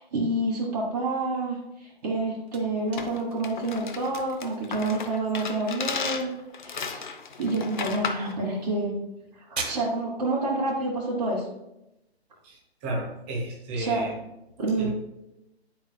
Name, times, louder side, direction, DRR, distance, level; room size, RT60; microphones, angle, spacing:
voice 1, 0.0-6.3 6.6-7.1 7.4-8.9 9.5-11.5 13.8-14.1 14.6-14.9, right 2 dB, 40° right, -3 dB, 1.5 m, -28 dB
sound 1, 1.9-12.6, right 3 dB, 75° right, 1.8 m, -45 dB
sound 2, 3.0-8.3, left 5 dB, 45° left, 0.6 m, -34 dB
voice 2, 12.4-14.2 14.8-14.9, right 1 dB, 10° right, -1 dB, 0.6 m, -33 dB
9.9 x 4.6 x 2.3 m, 0.88 s
hypercardioid pair, 155°, 33 cm